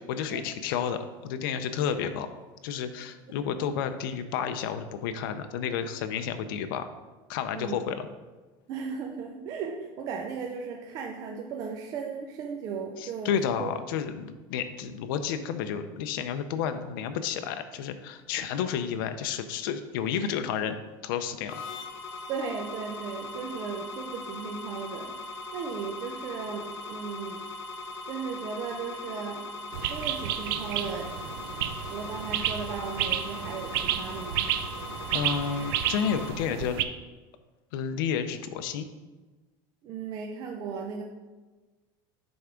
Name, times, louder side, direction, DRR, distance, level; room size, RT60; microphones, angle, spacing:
voice 1, 0.1-2.3 2.6-6.9 7.3-8.1 13.0-20.8 21.0-21.6 35.1-36.8 37.7-38.9, left 7 dB, 75° left, 8 dB, 0.5 m, -31 dB
voice 2, 8.7-13.7 22.3-25.1 25.5-27.4 28.1-29.4 29.9-31.1 31.8-34.4 39.8-41.0, right 5 dB, 30° right, 1 dB, 0.5 m, -36 dB
sound 1, 21.5-36.3, left 2 dB, 50° left, 0.9 m, -40 dB
sound 2, 29.7-36.8, right 11 dB, 80° right, 0.5 m, -31 dB
7.9 x 3.5 x 4.9 m, 1.2 s
cardioid pair, 180°, 12 cm